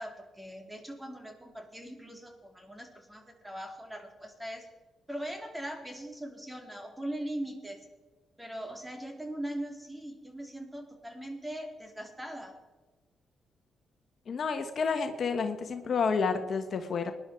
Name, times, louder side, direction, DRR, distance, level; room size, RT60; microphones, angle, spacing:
voice 1, 0.0-4.7 5.1-7.8 8.4-12.5, right 1 dB, 5° right, 2 dB, 3.8 m, -40 dB
voice 2, 14.3-17.1, left 5 dB, 60° left, 7 dB, 1.4 m, -30 dB
20.0 x 11.0 x 4.6 m, 1.2 s
cardioid pair, 70°, 0 cm